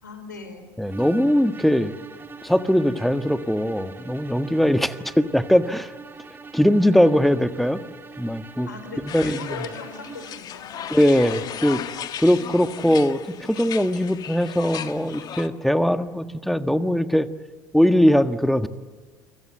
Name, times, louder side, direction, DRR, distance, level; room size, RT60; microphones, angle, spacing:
voice 1, 0.0-0.7 8.7-11.0, left 3 dB, 85° left, 8 dB, 4.7 m, -39 dB
voice 2, 0.8-1.9 2.4-5.9 6.5-7.8 8.2-8.7 9.1-9.4 10.9-11.8 12.2-17.3 17.7-18.7, equal, ahead, 10 dB, 1.5 m, -20 dB
sound 1, 0.8-10.5, right 5 dB, 20° right, 2.7 m, -43 dB
sound 2, 9.1-15.5, left 9 dB, 45° left, 1.7 m, -36 dB
28.5 x 24.5 x 8.0 m, 1.5 s
hypercardioid pair, 70°, 10 cm